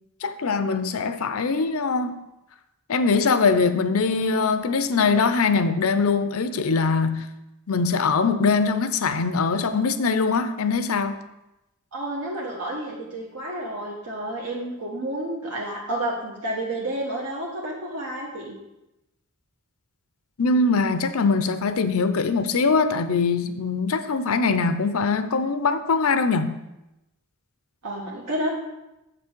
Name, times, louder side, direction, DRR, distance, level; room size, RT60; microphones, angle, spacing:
voice 1, 0.2-2.2 2.9-7.3 7.7-11.2 20.4-26.6, left 4 dB, 70° left, 11 dB, 0.6 m, -22 dB
voice 2, 11.9-18.6 27.8-28.5, right 1 dB, 90° right, -4 dB, 1.3 m, -30 dB
7.5 x 6.1 x 4.5 m, 0.93 s
head